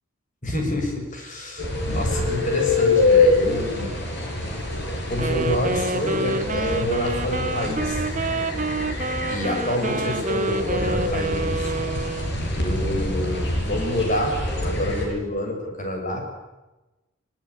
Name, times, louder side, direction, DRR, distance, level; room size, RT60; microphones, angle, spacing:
voice 1, 0.4-3.9 5.1-8.0 9.3-11.7 12.5-16.2, left 1 dB, 35° left, 2 dB, 7.1 m, -27 dB
sound 1, 1.6-15.1, left 2 dB, 55° left, 7.1 m, -25 dB
Wind instrument woodwind instrument, 5.1-12.4, right 3 dB, 35° right, 1.2 m, -28 dB
22.5 x 22.0 x 9.9 m, 1.1 s
head